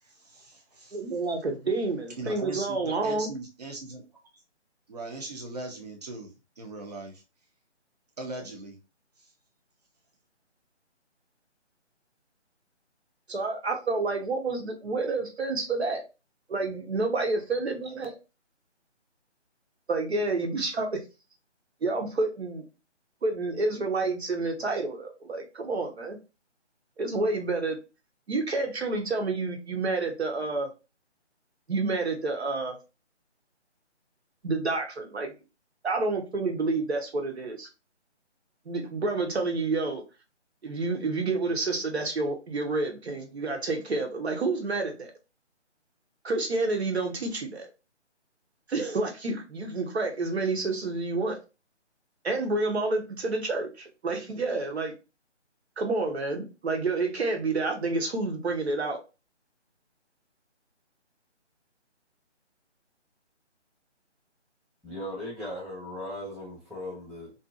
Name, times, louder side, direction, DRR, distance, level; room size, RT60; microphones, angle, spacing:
voice 1, 0.0-1.0 2.2-4.0 4.9-7.2 8.2-8.8 9.2-9.3, right 2 dB, 35° right, 0.7 m, -39 dB
voice 2, 0.9-3.3 13.3-16.0 16.5-18.2 19.9-21.0 21.8-22.6 23.2-26.2 27.0-27.8 28.3-30.7 31.7-32.8 34.4-35.3 35.8-37.7 38.7-40.0 40.6-45.1 46.2-47.7 48.7-51.4 52.2-54.9 55.8-59.0, right 3 dB, 60° right, 0.9 m, -29 dB
voice 3, 64.8-67.3, left 1 dB, ahead, 0.4 m, -38 dB
2.6 x 2.5 x 2.4 m
figure-of-eight pair, 160°, 36 cm